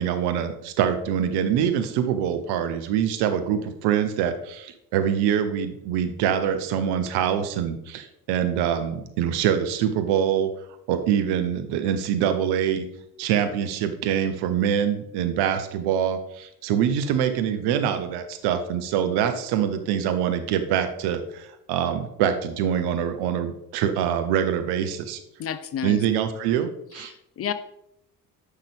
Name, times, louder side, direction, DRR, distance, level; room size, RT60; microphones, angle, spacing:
voice 1, 0.0-10.5 10.9-12.9 13.2-25.2 25.8-27.1, right 9 dB, 60° right, 8 dB, 1.0 m, -24 dB
voice 2, 25.4-26.0 26.9-27.5, left 8 dB, 30° left, 12 dB, 0.5 m, -31 dB
9.8 x 5.8 x 3.4 m, 0.78 s
figure-of-eight pair, 50°, 45 cm